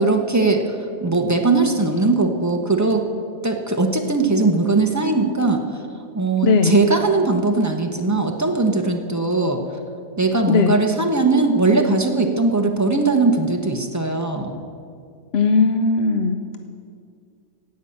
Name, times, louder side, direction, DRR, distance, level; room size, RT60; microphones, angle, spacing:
voice 1, 0.0-3.1 3.4-5.6 6.1-9.6 10.2-14.5, right 3 dB, 15° right, 3 dB, 0.6 m, -19 dB
voice 2, 6.4-6.8 10.5-10.7 15.3-16.4, left 4 dB, 60° left, 7 dB, 0.6 m, -17 dB
16.0 x 5.7 x 8.6 m, 2.3 s
omnidirectional pair, 1.7 m